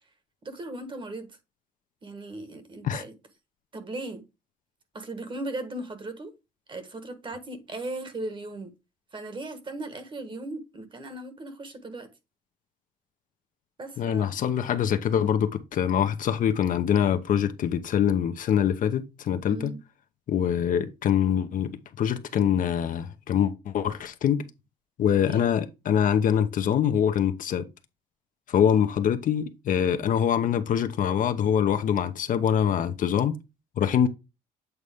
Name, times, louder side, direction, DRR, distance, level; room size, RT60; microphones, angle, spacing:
voice 1, 0.4-1.3 2.0-3.1 3.7-4.2 4.9-6.3 6.7-8.7 9.1-12.1 13.8-14.4 19.5-19.8 25.3-25.5, right 2 dB, 30° right, 1.4 m, -37 dB
voice 2, 14.0-19.7 20.3-24.5 25.0-27.6 28.5-33.4 33.8-34.1, left 9 dB, 50° left, 0.8 m, -24 dB
8.2 x 4.0 x 3.5 m
cardioid pair, 110°, 17 cm